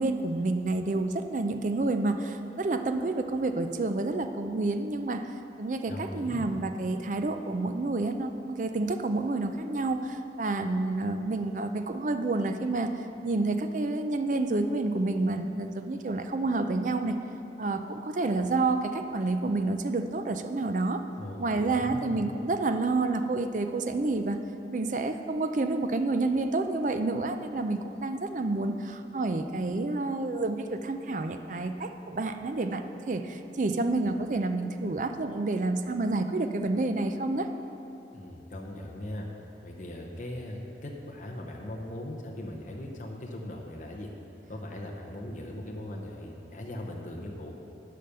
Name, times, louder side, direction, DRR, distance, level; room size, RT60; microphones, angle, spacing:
voice 1, 0.0-5.3 5.6-12.9 13.2-17.1 17.6-21.0 21.4-24.4 24.7-37.5, right 2 dB, 45° right, 7 dB, 0.5 m, -29 dB
voice 2, 5.9-6.5 21.2-22.2 38.1-39.3 39.6-44.1 44.5-47.5, left 1 dB, 45° left, 0 dB, 0.9 m, -39 dB
11.5 x 5.1 x 6.9 m, 2.9 s
head